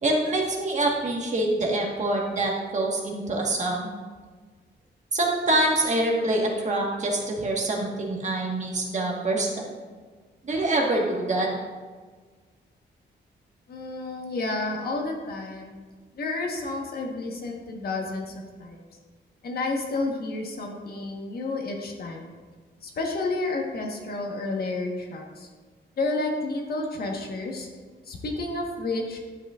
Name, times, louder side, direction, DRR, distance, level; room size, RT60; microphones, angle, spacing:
voice 1, 0.0-3.9 5.1-9.5 10.4-11.5, right 2 dB, 40° right, -1 dB, 1.5 m, -25 dB
voice 2, 13.7-15.8 16.1-18.3 18.6-18.9 19.4-22.3 22.8-25.5 26.0-27.7 28.0-29.2, left 2 dB, 55° left, 1 dB, 1.3 m, -30 dB
12.0 x 8.3 x 2.4 m, 1.4 s
wide cardioid pair, 165°, 18 cm